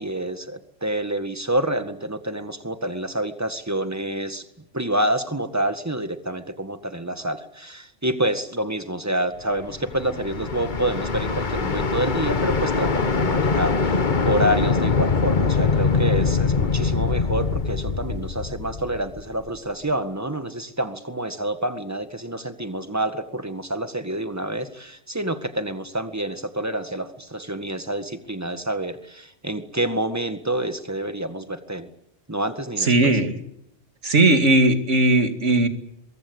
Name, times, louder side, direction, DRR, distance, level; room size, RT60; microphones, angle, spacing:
voice 1, 0.0-4.5 4.7-31.9 32.3-33.2, right 1 dB, 15° right, 9 dB, 1.8 m, -28 dB
sound 1, 9.6-19.6, left 4 dB, 45° left, 1.3 m, -23 dB
voice 2, 32.8-33.4 34.0-35.7, right 2 dB, 85° right, 7 dB, 2.7 m, -18 dB
23.0 x 23.0 x 8.0 m, 0.79 s
omnidirectional pair, 1.2 m